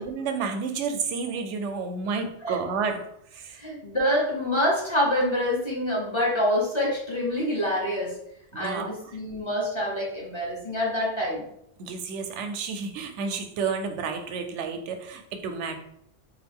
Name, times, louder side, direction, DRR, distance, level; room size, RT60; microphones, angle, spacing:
voice 1, 0.0-3.0 3.3-3.6 8.5-8.9 11.8-15.8, right 5 dB, 85° right, 6 dB, 0.9 m, -31 dB
voice 2, 3.5-8.1 8.5-11.5, equal, 25° left, -4 dB, 0.9 m, -26 dB
3.8 x 2.3 x 3.5 m, 0.76 s
omnidirectional pair, 1.2 m